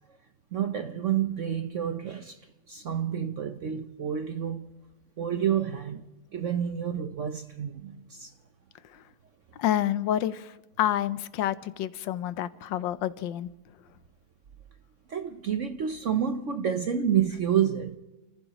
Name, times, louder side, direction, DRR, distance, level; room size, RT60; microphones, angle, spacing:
voice 1, 0.5-2.4 2.7-4.7 5.2-6.0 6.3-8.3 15.1-18.0, right 9 dB, 60° right, 0.8 m, -29 dB
voice 2, 9.6-13.5, left 12 dB, 75° left, 1.4 m, -29 dB
30.0 x 15.0 x 3.0 m
omnidirectional pair, 2.1 m